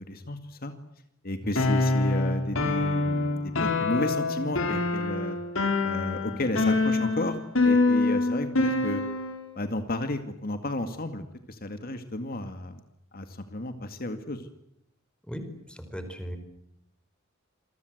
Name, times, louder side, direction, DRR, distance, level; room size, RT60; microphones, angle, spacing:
voice 1, 0.1-0.7 1.2-5.4 5.8-7.4 7.6-9.0 9.6-12.8 13.1-14.5, left 1 dB, 45° left, 8 dB, 2.2 m, -32 dB
sound 1, 1.5-9.4, left 3 dB, 75° left, 6.0 m, -25 dB
voice 2, 15.7-16.4, equal, 5° left, 8 dB, 4.9 m, -37 dB
28.0 x 22.5 x 8.0 m, 0.77 s
head